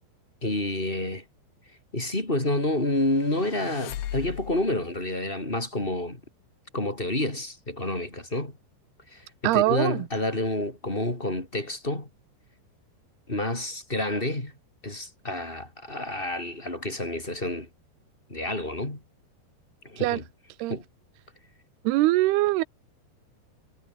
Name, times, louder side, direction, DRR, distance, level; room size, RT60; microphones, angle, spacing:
voice 1, 0.4-1.2 1.9-6.2 6.7-8.6 9.1-12.1 13.3-14.5 14.8-17.7 18.3-19.0 19.8-20.3 20.7-20.8, left 1 dB, 10° left, 3.9 m, -29 dB
sound 1, 3.1-4.8, left 12 dB, 80° left, 4.2 m, -37 dB
voice 2, 9.4-9.9 20.0-20.2 20.6-20.8 21.9-22.6, right 18 dB, 75° right, 2.6 m, -22 dB
omnidirectional pair, 5.1 m